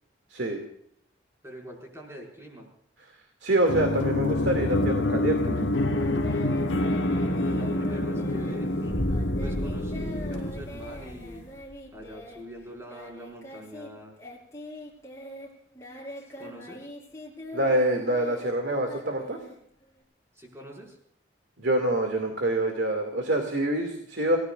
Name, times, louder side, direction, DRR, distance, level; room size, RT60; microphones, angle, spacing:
voice 1, 0.3-0.6 3.4-5.6 17.5-19.4 21.6-24.4, right 1 dB, 70° right, 3 dB, 2.5 m, -26 dB
voice 2, 1.4-2.7 7.3-9.0 9.4-11.5 11.9-14.1 16.4-16.9 20.4-21.0, equal, 15° right, -1 dB, 5.9 m, -43 dB
sound 1, 3.6-11.2, left 1 dB, 75° left, 1.3 m, -27 dB
Singing, 5.9-13.9 14.2-20.0, left 1 dB, 15° left, 5.2 m, -43 dB
Boom, 8.9-11.8, left 1 dB, 60° left, 1.5 m, -33 dB
29.0 x 18.0 x 2.6 m, 0.67 s
head